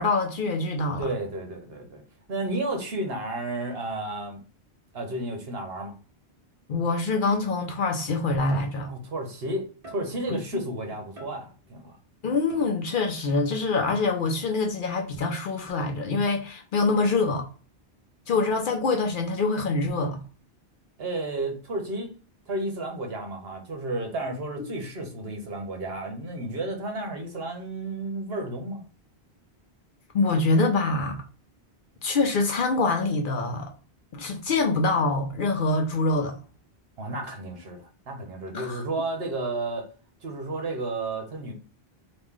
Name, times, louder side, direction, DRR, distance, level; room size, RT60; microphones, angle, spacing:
voice 1, 0.0-1.1 6.7-8.9 10.3-10.4 12.2-17.5 18.3-20.2 30.1-31.2 32.0-33.7 34.1-36.4 38.5-38.8, left 3 dB, 60° left, 0.7 m, -25 dB
voice 2, 1.0-2.0 2.3-4.4 4.9-5.9 8.9-12.0 21.0-22.1 22.5-28.9 37.0-39.9 40.2-41.5, right 2 dB, 65° right, 1.1 m, -32 dB
sound 1, 8.5-9.1 9.8-10.4 11.2-11.8 12.5-13.2 13.9-14.4, right 1 dB, 30° right, 1.1 m, -47 dB
3.1 x 2.5 x 3.6 m
omnidirectional pair, 1.1 m